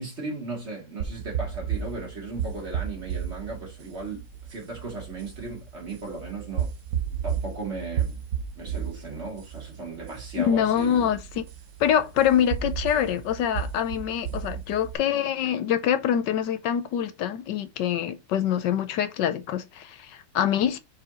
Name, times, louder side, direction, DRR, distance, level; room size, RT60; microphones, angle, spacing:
voice 1, 0.0-6.7 7.2-8.2 8.6-11.1, right 3 dB, 35° right, 2.3 m, -36 dB
sound 1, 1.0-15.0, right 8 dB, 55° right, 1.1 m, -33 dB
voice 2, 10.4-11.4 11.8-20.8, left 9 dB, 75° left, 1.3 m, -25 dB
4.9 x 4.6 x 5.0 m
omnidirectional pair, 1.9 m